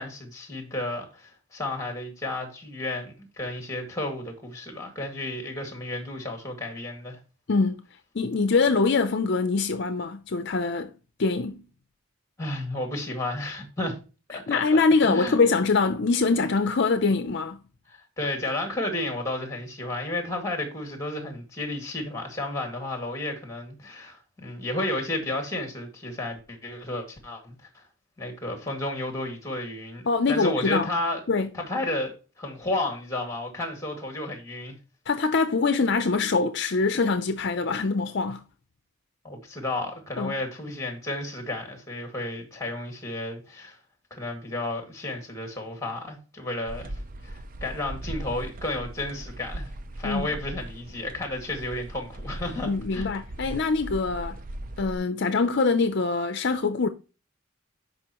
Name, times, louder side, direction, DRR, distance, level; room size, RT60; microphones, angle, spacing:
voice 1, 0.0-7.2 12.4-14.0 14.3-15.4 17.9-27.8 28.2-31.2 31.5-34.8 39.2-43.8 44.1-49.7 50.0-53.1, left 1 dB, 15° left, 2.1 m, -32 dB
voice 2, 7.5-7.8 8.1-10.9 11.2-11.6 14.3-17.6 30.1-30.9 31.3-31.5 35.1-38.4 40.2-40.4 50.0-50.3 52.6-54.4 54.8-56.9, left 4 dB, 55° left, 0.5 m, -24 dB
sound 1, 46.7-55.0, right 1 dB, 40° right, 0.5 m, -38 dB
11.5 x 5.3 x 3.0 m
head